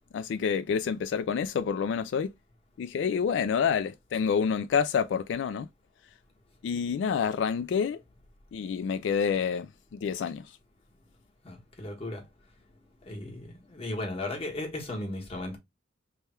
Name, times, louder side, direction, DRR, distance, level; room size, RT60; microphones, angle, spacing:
voice 1, 0.1-2.3 2.8-5.7 6.6-8.0 8.5-10.4, left 6 dB, 85° left, 0.3 m, -28 dB
voice 2, 11.4-12.2 13.0-15.6, left 1 dB, 35° left, 1.1 m, -36 dB
3.3 x 2.2 x 4.2 m
head